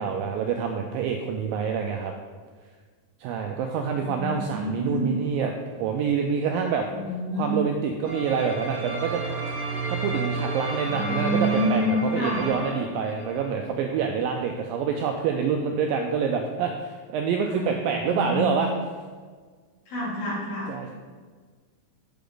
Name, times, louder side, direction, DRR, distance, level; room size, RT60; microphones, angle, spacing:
voice 1, 0.0-2.1 3.2-6.9 7.3-9.2 9.9-18.7 20.7-20.9, right 6 dB, 85° right, 3 dB, 2.0 m, -27 dB
voice 2, 4.0-5.1 7.0-7.7 10.8-12.4 17.5-18.5 19.9-20.7, left 1 dB, 60° left, -6 dB, 3.8 m, -28 dB
sound 1, 8.0-13.5, right 3 dB, 50° right, 1.1 m, -31 dB
8.5 x 7.0 x 3.8 m, 1.5 s
omnidirectional pair, 4.6 m